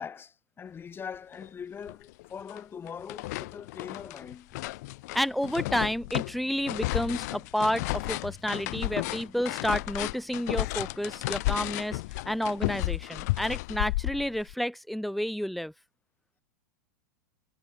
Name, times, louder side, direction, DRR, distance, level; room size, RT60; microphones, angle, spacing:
voice 1, 0.0-4.6, left 7 dB, 20° left, 3.6 m, -42 dB
sound 1, 1.4-1.5 1.9-2.6 2.9-14.5, left 21 dB, 60° left, 5.6 m, -33 dB
voice 2, 5.1-12.0 12.3-15.7, equal, ahead, 4.0 m, -30 dB
hypercardioid pair, 110°, 10 cm